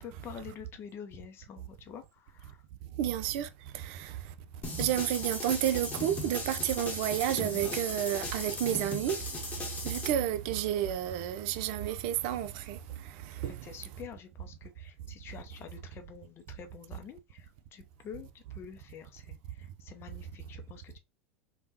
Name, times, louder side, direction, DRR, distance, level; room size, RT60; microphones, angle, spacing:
voice 1, 0.0-2.6 13.5-17.5 17.7-19.4 19.8-21.0, left 7 dB, 35° left, 0.5 m, -47 dB
voice 2, 3.0-3.5 3.7-4.1 4.8-9.2 9.9-12.8 13.4-13.6, right 11 dB, 55° right, 0.4 m, -30 dB
sound 1, 4.6-10.1, left 2 dB, 20° left, 1.0 m, -38 dB
3.4 x 2.2 x 2.7 m
hypercardioid pair, 90°, 7 cm